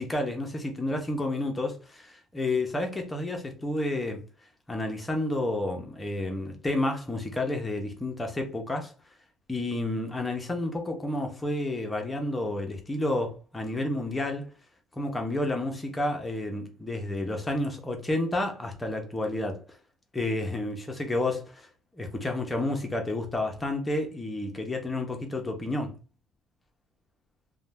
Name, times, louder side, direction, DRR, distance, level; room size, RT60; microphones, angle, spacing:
voice 1, 0.0-4.2 4.7-8.9 9.5-14.5 15.0-19.6 20.1-26.0, left 2 dB, 10° left, 0.6 m, -30 dB
2.5 x 2.1 x 3.2 m
cardioid pair, 155°, 0 cm